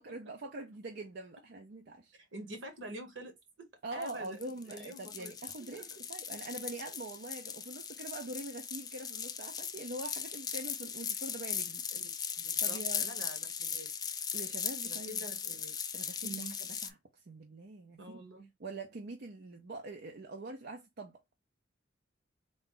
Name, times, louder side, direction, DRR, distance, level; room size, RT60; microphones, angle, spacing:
voice 1, 0.0-2.2 3.8-11.8 12.6-13.1 14.3-15.6 15.9-18.2 18.6-21.2, right 2 dB, 60° right, 0.6 m, -44 dB
voice 2, 2.3-4.4 4.7-5.3 5.7-6.0 11.9-12.0 12.4-13.9 14.8-15.8 16.2-16.6 18.0-18.5, right 1 dB, 75° right, 1.2 m, -47 dB
sound 1, 4.0-16.9, left 7 dB, 20° left, 0.4 m, -38 dB
3.8 x 2.3 x 3.7 m
head